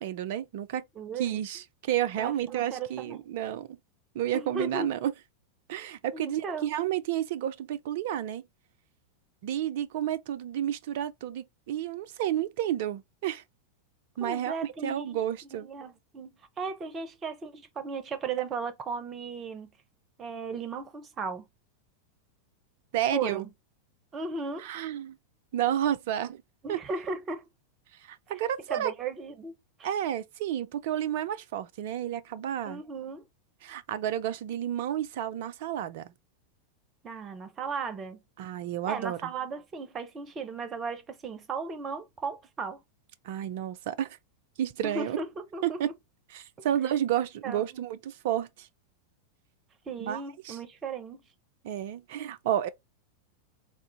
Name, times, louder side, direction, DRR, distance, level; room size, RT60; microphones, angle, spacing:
voice 1, 0.0-0.8 1.2-3.8 4.1-5.1 5.7-8.4 9.4-13.4 14.2-15.7 22.9-23.5 24.6-25.2 25.5-26.4 26.7-26.8 28.1-28.9 29.8-32.8 33.6-36.1 38.4-39.2 43.3-44.1 44.6-45.2 45.6-45.9 46.3-48.7 50.0-50.6 51.6-52.7, right 11 dB, 50° right, 0.4 m, -31 dB
voice 2, 1.0-1.4 2.2-3.2 4.3-4.9 6.1-6.7 14.2-15.2 15.5-19.7 20.2-21.4 23.1-23.5 24.1-24.7 26.6-27.5 28.7-29.5 29.8-29.9 32.7-33.2 37.0-38.2 38.9-42.8 44.8-45.9 47.4-47.6 49.9-51.2, right 5 dB, 25° right, 0.7 m, -36 dB
3.7 x 2.5 x 3.4 m
figure-of-eight pair, 90°, 0 cm